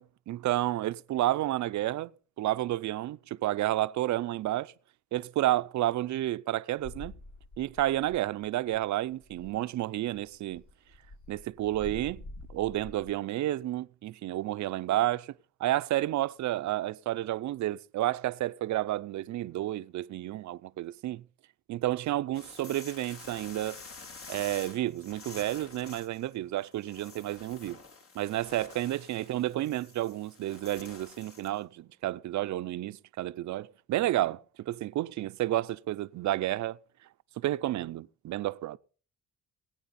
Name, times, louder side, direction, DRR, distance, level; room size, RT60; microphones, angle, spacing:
voice 1, 0.0-2.1 2.4-4.7 5.1-7.1 7.6-10.6 11.3-12.2 12.5-15.3 15.6-21.2 21.7-23.8 24.3-27.8 28.1-36.8 37.4-38.8, right 14 dB, 70° right, 0.6 m, -31 dB
sound 1, 6.8-8.5 8.7-8.9 9.1-9.6 10.1-13.1, left 2 dB, 75° left, 3.3 m, -47 dB
sound 2, 22.3-31.6, left 4 dB, 50° left, 2.5 m, -49 dB
22.0 x 9.0 x 4.2 m
cardioid pair, 90°, 30 cm